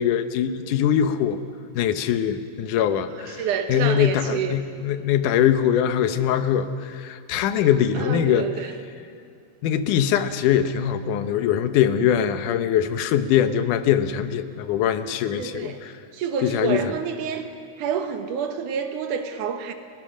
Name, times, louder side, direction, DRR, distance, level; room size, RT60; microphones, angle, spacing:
voice 1, 0.0-1.4 1.8-8.5 9.6-15.9 16.4-16.9, left 9 dB, 85° left, 10 dB, 2.5 m, -22 dB
voice 2, 3.4-4.6 7.9-8.7 15.2-15.8 16.1-17.5 17.8-19.7, right 7 dB, 85° right, 7 dB, 2.8 m, -28 dB
30.0 x 18.0 x 6.3 m, 2.3 s
omnidirectional pair, 3.5 m